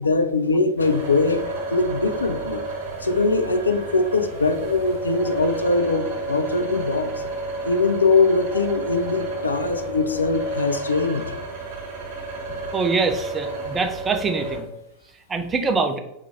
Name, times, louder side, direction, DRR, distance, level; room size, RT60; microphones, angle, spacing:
voice 1, 0.0-2.6 3.0-7.1 7.7-11.2, left 3 dB, 75° left, 9 dB, 0.3 m, -22 dB
sound 1, 0.8-14.6, right 2 dB, 50° right, 1.5 m, -31 dB
voice 2, 12.7-14.7 15.3-16.0, right 4 dB, 20° right, 6 dB, 0.5 m, -24 dB
3.3 x 3.1 x 3.5 m, 0.81 s
figure-of-eight pair, 90°, 0 cm